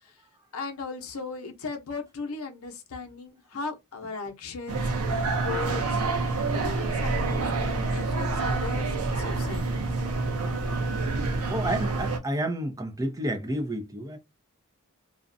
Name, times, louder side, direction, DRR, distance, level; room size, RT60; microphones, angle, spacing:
voice 1, 0.5-4.9 5.4-6.0 6.4-7.4 7.9-9.6, left 4 dB, 75° left, 0.7 m, -37 dB
sound 1, 4.7-12.2, right 3 dB, 90° right, 0.6 m, -27 dB
voice 2, 11.5-14.2, right 1 dB, 15° right, 0.5 m, -30 dB
2.5 x 2.1 x 2.5 m
head